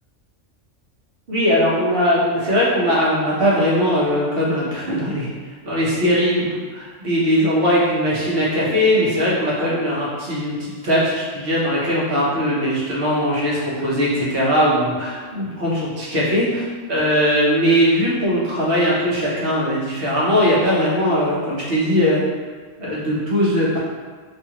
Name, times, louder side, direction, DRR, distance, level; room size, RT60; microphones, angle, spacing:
voice 1, 1.3-5.3 5.6-22.2 22.8-23.8, equal, 50° right, -6 dB, 0.9 m, -20 dB
2.7 x 2.4 x 2.8 m, 1.5 s
omnidirectional pair, 1.4 m